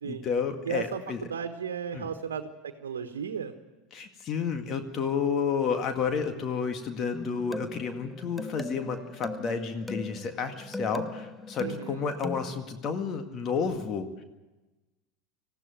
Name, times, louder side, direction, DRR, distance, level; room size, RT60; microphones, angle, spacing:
voice 1, 0.0-1.2 1.9-2.1 3.9-14.2, left 6 dB, 40° left, 6 dB, 1.9 m, -31 dB
voice 2, 0.6-3.5 11.6-12.0, right 7 dB, 85° right, 7 dB, 1.2 m, -35 dB
sound 1, 7.1-12.6, left 2 dB, 5° left, 1.0 m, -39 dB
19.0 x 15.0 x 9.2 m, 1.1 s
hypercardioid pair, 85°, 0 cm